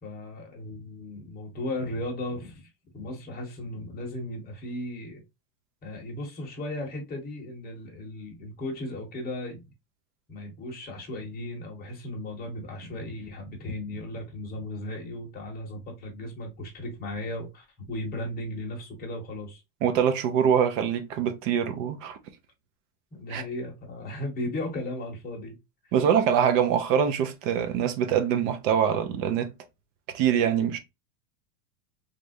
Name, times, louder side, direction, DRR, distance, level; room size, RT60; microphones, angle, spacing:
voice 1, 0.0-5.2 5.8-9.6 10.3-19.6 23.1-25.6, left 1 dB, 20° left, 1.0 m, -36 dB
voice 2, 19.8-22.2 23.3-23.4 25.9-29.5 30.1-30.8, right 8 dB, 50° right, 0.7 m, -24 dB
3.3 x 2.6 x 2.5 m
supercardioid pair, 145°, 48 cm